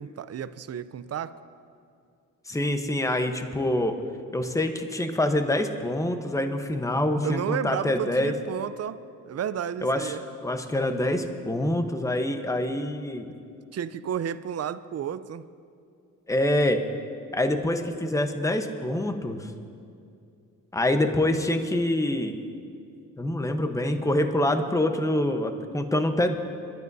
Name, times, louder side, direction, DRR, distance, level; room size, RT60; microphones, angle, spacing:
voice 1, 0.0-1.4 7.2-10.2 13.7-15.4, right 9 dB, 45° right, 14 dB, 0.6 m, -32 dB
voice 2, 2.5-4.0 4.3-8.3 9.8-10.2 10.4-13.3 16.3-16.8 17.3-19.5 20.7-22.4 23.2-26.3, left 1 dB, 10° left, 7 dB, 1.0 m, -25 dB
24.0 x 12.5 x 2.7 m, 2.4 s
cardioid pair, 80°, 34 cm